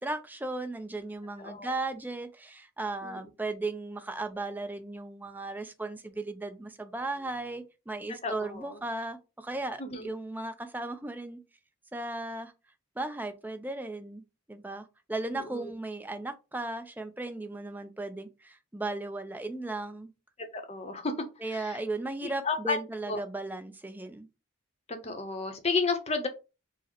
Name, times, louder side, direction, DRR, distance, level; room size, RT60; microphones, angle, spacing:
voice 1, 0.0-11.4 11.9-12.5 13.0-14.2 14.5-20.1 21.4-24.3, right 2 dB, 10° right, 8 dB, 0.4 m, -36 dB
voice 2, 1.4-1.7 3.0-3.2 8.2-8.8 9.8-10.1 15.3-15.6 20.5-21.1 21.5-21.8 22.4-22.8 23.1-23.2 24.9-26.3, left 4 dB, 30° left, 6 dB, 0.7 m, -32 dB
4.8 x 2.1 x 4.3 m, 0.29 s
head